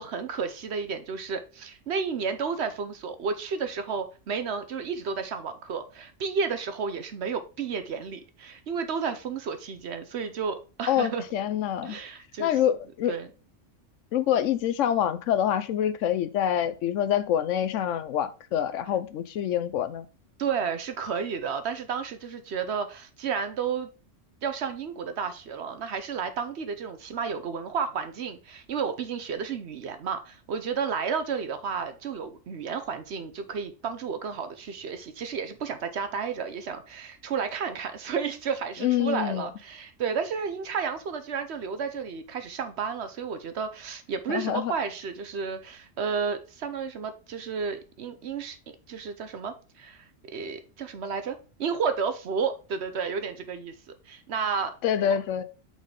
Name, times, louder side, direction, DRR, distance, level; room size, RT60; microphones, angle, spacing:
voice 1, 0.0-11.2 11.8-12.5 13.1-13.3 20.4-23.9 24.4-48.6 48.9-50.1 50.3-54.7, right 6 dB, 60° right, 0.9 m, -32 dB
voice 2, 10.9-12.0 12.4-13.1 14.1-20.1 38.8-39.5 44.3-44.7 54.8-55.4, left 10 dB, 75° left, 1.0 m, -26 dB
5.3 x 4.3 x 4.7 m
omnidirectional pair, 1.3 m